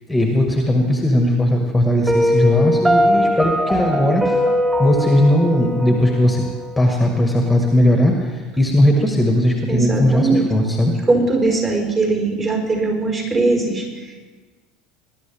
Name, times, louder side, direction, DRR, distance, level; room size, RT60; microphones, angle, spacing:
voice 1, 0.1-4.3 4.8-6.4 6.8-10.9, left 1 dB, 5° left, 2 dB, 1.7 m, -17 dB
Piano, 2.1-7.0, equal, 15° right, 2.8 m, -20 dB
voice 2, 9.7-10.5 11.1-14.2, right 3 dB, 30° right, 0 dB, 4.7 m, -20 dB
21.0 x 11.5 x 3.5 m, 1.4 s
figure-of-eight pair, 75°, 0 cm